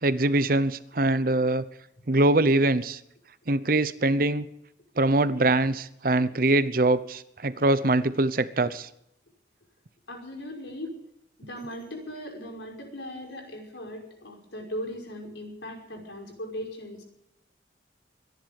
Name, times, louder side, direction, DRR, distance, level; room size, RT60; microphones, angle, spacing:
voice 1, 0.0-1.6 2.1-3.0 3.5-4.5 5.0-8.9, right 2 dB, 50° right, 15 dB, 0.9 m, -23 dB
voice 2, 10.1-10.9 11.4-17.0, equal, 80° left, 3 dB, 5.6 m, -38 dB
24.0 x 11.0 x 5.4 m, 0.78 s
head